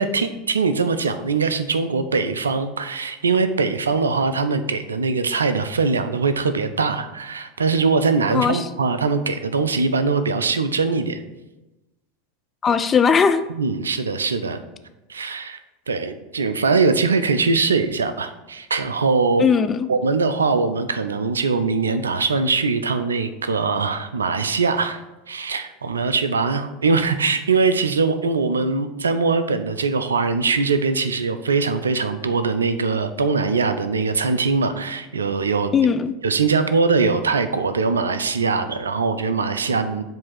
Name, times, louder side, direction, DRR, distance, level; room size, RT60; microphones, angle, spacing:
voice 1, 0.0-11.2 13.5-14.6 15.1-15.6 15.9-19.5 19.9-25.0 25.3-35.7 36.2-40.0, right 4 dB, 80° right, 10 dB, 0.4 m, -22 dB
voice 2, 8.3-8.7 12.6-13.4 19.4-19.9 35.7-36.1, left 6 dB, 25° left, 10 dB, 0.4 m, -18 dB
7.4 x 2.7 x 5.8 m, 1.0 s
figure-of-eight pair, 80°, 0 cm